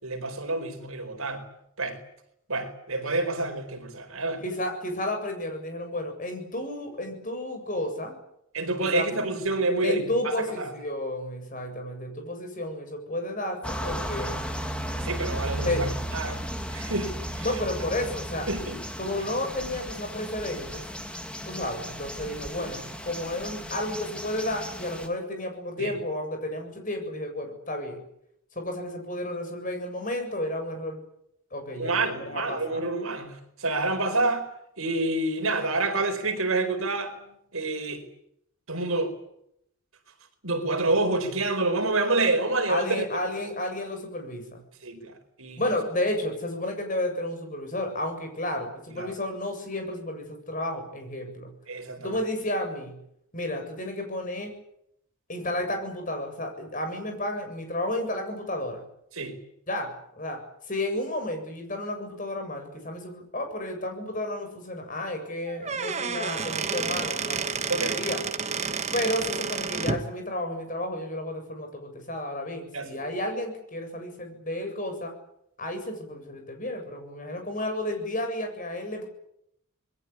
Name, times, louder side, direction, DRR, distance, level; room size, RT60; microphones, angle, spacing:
voice 1, 0.0-1.4 1.8-2.0 2.5-4.4 8.5-10.7 15.0-16.4 16.7-17.4 18.5-18.8 25.8-25.9 31.8-34.5 34.8-37.1 37.5-38.0 38.7-39.1 40.4-43.0 44.8-45.6 48.9-49.1 51.7-52.2 59.1-59.4 67.7-68.2 72.7-73.0, right 2 dB, 75° right, 4.7 m, -28 dB
voice 2, 4.4-8.1 8.9-9.1 9.8-14.4 15.6-15.9 17.4-18.5 19.0-20.8 21.5-28.0 28.6-31.0 31.5-32.8 42.7-44.6 45.6-51.5 52.0-53.0 53.3-54.6 55.3-58.8 59.7-60.4 60.7-68.2 68.9-75.1 75.6-79.0, left 1 dB, 35° left, 7.5 m, -32 dB
sound 1, 13.6-25.1, equal, 5° left, 2.5 m, -35 dB
Squeak / Wood, 65.5-70.1, right 5 dB, 30° right, 1.4 m, -30 dB
27.0 x 21.5 x 8.6 m
head